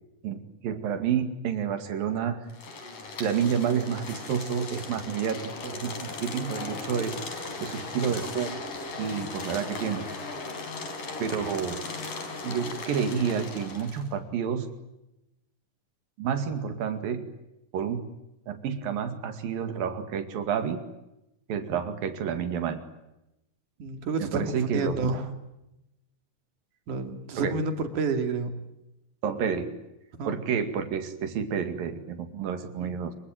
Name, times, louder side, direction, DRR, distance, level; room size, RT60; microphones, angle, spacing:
voice 1, 0.2-2.5 3.2-8.6 9.0-10.1 11.2-11.8 12.4-14.7 16.2-17.3 17.7-18.1 18.5-20.8 21.5-22.9 24.2-25.0 27.4-27.6 29.2-29.8 30.3-33.1, right 7 dB, 85° right, 9 dB, 4.0 m, -29 dB
sound 1, 2.5-14.1, left 3 dB, 70° left, 5.8 m, -37 dB
voice 2, 23.8-25.3 26.9-28.5 30.2-30.4 32.8-32.9, right 3 dB, 65° right, 7 dB, 3.8 m, -29 dB
27.0 x 24.5 x 9.1 m, 0.90 s
omnidirectional pair, 3.9 m